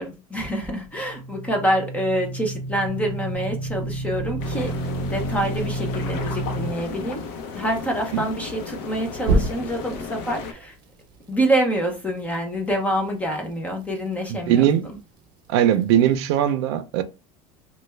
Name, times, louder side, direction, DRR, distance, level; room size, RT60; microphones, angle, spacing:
voice 1, 0.0-4.7 5.1-7.2 7.5-10.7 11.3-14.7, right 1 dB, 10° left, 0.5 m, -26 dB
sound 1, 0.9-6.7 9.2-10.0, right 2 dB, 30° right, 0.6 m, -28 dB
sound 2, 4.4-10.5, left 5 dB, 65° left, 0.7 m, -34 dB
voice 2, 14.3-14.9 15.5-17.0, right 10 dB, 80° right, 0.5 m, -20 dB
3.2 x 2.2 x 3.2 m
cardioid pair, 170°, 14 cm